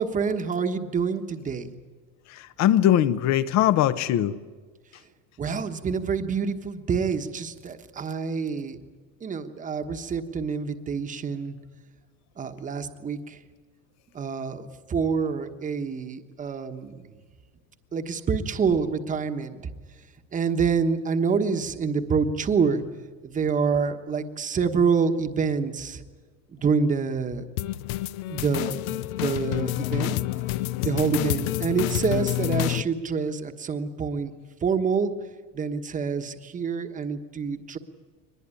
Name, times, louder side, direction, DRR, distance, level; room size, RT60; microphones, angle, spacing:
voice 1, 0.0-1.7 5.4-8.8 9.2-11.6 12.4-13.4 14.1-16.9 17.9-19.7 20.3-22.8 23.2-26.0 26.5-27.4 28.3-28.8 29.2-30.2 30.8-34.3 34.6-35.1 35.5-37.8, right 5 dB, 20° right, 1.3 m, -27 dB
voice 2, 2.3-4.4, left 11 dB, 40° left, 0.9 m, -21 dB
sound 1, 27.6-32.8, left 16 dB, 80° left, 0.8 m, -28 dB
23.0 x 20.5 x 9.8 m
supercardioid pair, 145°, 41 cm